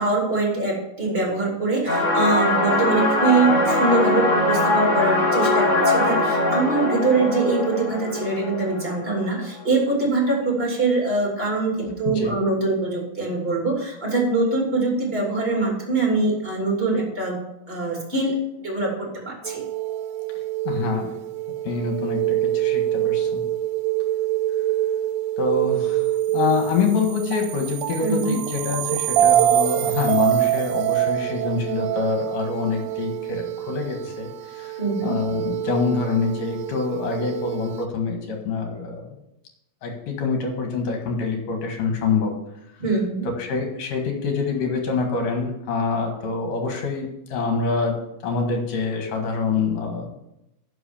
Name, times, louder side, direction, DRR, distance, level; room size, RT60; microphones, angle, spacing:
voice 1, 0.0-17.4 17.7-18.9 19.2-19.6 28.0-28.3 34.8-35.1 42.8-43.3, right 3 dB, 20° right, -1 dB, 2.5 m, -23 dB
sound 1, 1.9-9.4, left 2 dB, 25° left, 2.5 m, -21 dB
sound 2, 19.4-37.9, right 13 dB, 80° right, 2.2 m, -25 dB
voice 2, 20.6-21.1 21.6-23.4 25.4-39.2 39.8-42.4 43.4-48.0 48.2-50.1, left 4 dB, 70° left, 3 dB, 3.2 m, -26 dB
11.0 x 5.7 x 7.1 m, 0.87 s
omnidirectional pair, 4.1 m